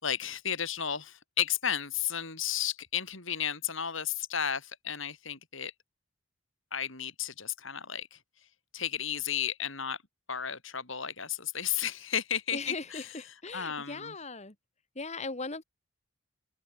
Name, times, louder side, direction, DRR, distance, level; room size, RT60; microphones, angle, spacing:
voice 1, 0.0-5.7 6.7-8.2 8.7-10.0 10.3-13.1 13.5-14.1, left 9 dB, 65° left, 4.5 m, -33 dB
voice 2, 12.5-14.5 15.0-15.6, left 3 dB, 35° left, 2.0 m, -39 dB
open air
head